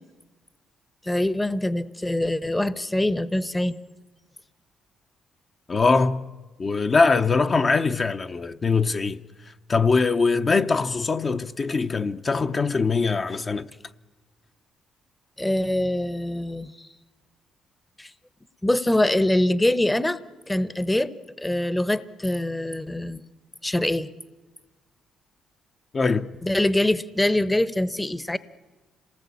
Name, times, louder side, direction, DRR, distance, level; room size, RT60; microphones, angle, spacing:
voice 1, 1.0-3.8 15.4-16.9 18.0-18.1 18.6-20.2 20.5-23.2 23.6-24.1 26.4-28.4, left 1 dB, 10° left, 0.9 m, -24 dB
voice 2, 5.7-6.2 6.6-9.2 9.7-13.7 25.9-26.3, left 4 dB, 35° left, 0.8 m, -22 dB
27.0 x 19.0 x 8.5 m
cardioid pair, 90°, 0 cm